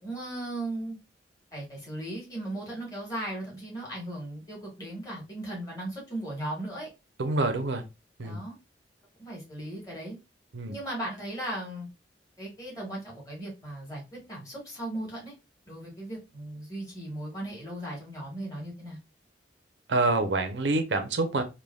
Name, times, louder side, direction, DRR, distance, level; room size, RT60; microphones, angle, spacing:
voice 1, 0.0-1.0 1.5-6.9 8.2-8.5 9.2-10.2 10.7-11.9 12.4-15.3 15.7-19.0, right 1 dB, 20° left, 1.5 m, -37 dB
voice 2, 7.2-7.8 8.2-8.4 10.5-10.7 19.9-21.4, right 2 dB, 80° right, 0.6 m, -26 dB
3.3 x 2.2 x 2.2 m
head